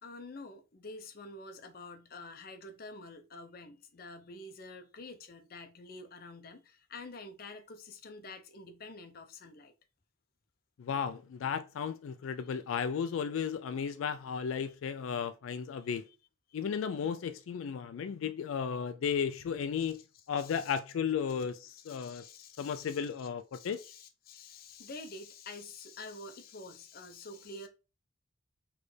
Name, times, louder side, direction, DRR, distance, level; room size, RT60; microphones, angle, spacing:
voice 1, 0.0-9.7 12.4-12.5 13.0-13.1 14.6-14.7 15.8-16.1 20.4-20.7 21.8-23.0 23.5-27.7, left 2 dB, 50° left, 0.7 m, -48 dB
voice 2, 10.8-16.1 16.5-20.0 20.3-23.8, left 7 dB, 85° left, 0.3 m, -34 dB
4.2 x 3.3 x 3.2 m
head